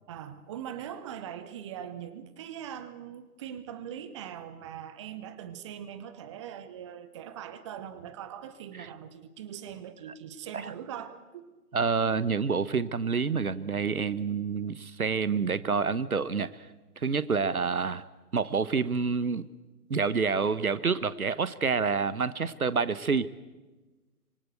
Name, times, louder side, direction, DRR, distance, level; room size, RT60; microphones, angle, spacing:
voice 1, 0.1-11.4, right 9 dB, 20° right, 13 dB, 1.0 m, -41 dB
voice 2, 11.7-16.5 17.0-18.0 18.3-19.5 19.9-23.3, right 5 dB, 65° right, 16 dB, 1.3 m, -28 dB
25.5 x 24.0 x 8.0 m, 1.2 s
figure-of-eight pair, 135°, 46 cm